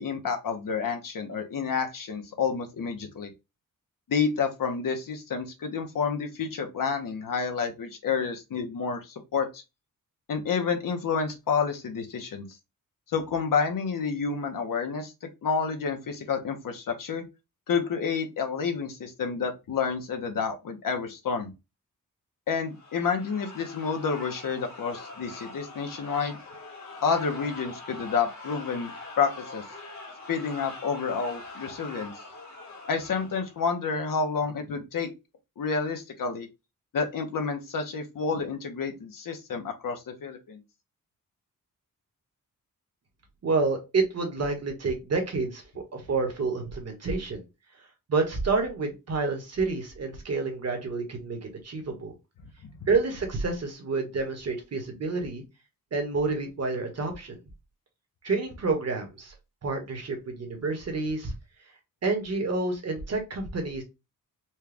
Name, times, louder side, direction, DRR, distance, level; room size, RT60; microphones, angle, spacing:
voice 1, 0.0-3.3 4.1-9.6 10.3-12.5 13.1-17.3 17.7-21.5 22.5-26.4 27.0-28.9 29.2-29.6 30.3-32.1 32.9-35.1 35.6-36.5 36.9-40.6, left 5 dB, 70° left, 5 dB, 1.0 m, -29 dB
sound 1, 22.7-33.6, left 2 dB, 55° left, 1.9 m, -43 dB
voice 2, 43.4-47.4 48.1-52.1 52.9-55.4 55.9-57.4 58.2-59.3 59.6-61.3 62.0-63.8, right 3 dB, 45° right, 3 dB, 1.4 m, -29 dB
4.4 x 2.3 x 3.3 m, 0.25 s
wide cardioid pair, 150°, 34 cm